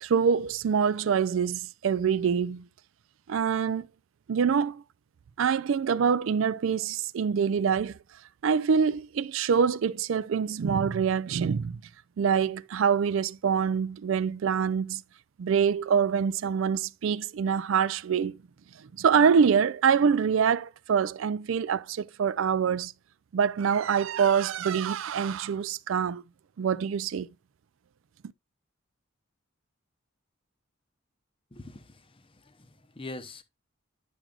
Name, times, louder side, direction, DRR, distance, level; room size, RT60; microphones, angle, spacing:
voice 1, 0.0-2.7 3.3-3.9 4.3-4.8 5.4-8.0 8.4-11.8 12.2-15.0 15.4-18.4 19.0-22.9 23.3-26.2 26.6-27.3, right 6 dB, 65° right, 0.4 m, -25 dB
voice 2, 31.5-33.4, left 2 dB, 25° left, 0.7 m, -44 dB
10.5 x 6.1 x 2.4 m
head